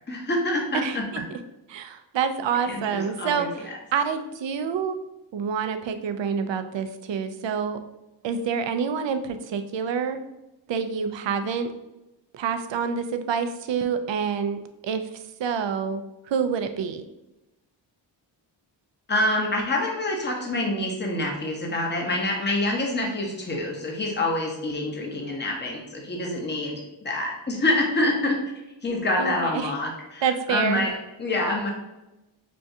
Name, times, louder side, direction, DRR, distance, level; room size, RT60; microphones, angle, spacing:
voice 1, 0.1-1.0 2.7-3.8 19.1-28.4 28.8-31.7, left 1 dB, 20° left, 1 dB, 0.9 m, -26 dB
voice 2, 0.8-1.2 1.7-5.0 5.3-7.8 8.2-10.2 10.7-11.7 12.3-17.0 29.2-29.7 30.2-30.8, right 6 dB, 70° right, 8 dB, 0.5 m, -27 dB
6.1 x 2.3 x 2.7 m, 0.96 s
cardioid pair, 60°, 47 cm